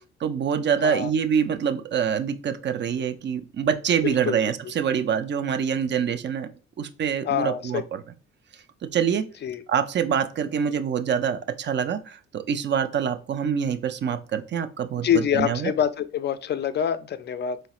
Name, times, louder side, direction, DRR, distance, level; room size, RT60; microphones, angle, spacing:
voice 1, 0.0-6.5 6.8-8.0 8.9-9.3 9.7-15.7, right 7 dB, 40° right, 9 dB, 0.4 m, -25 dB
voice 2, 4.0-4.4 7.2-7.8 9.4-9.6 15.0-17.6, left 9 dB, 35° left, 12 dB, 0.4 m, -25 dB
3.9 x 2.0 x 2.4 m, 0.35 s
cardioid pair, 90°, 30 cm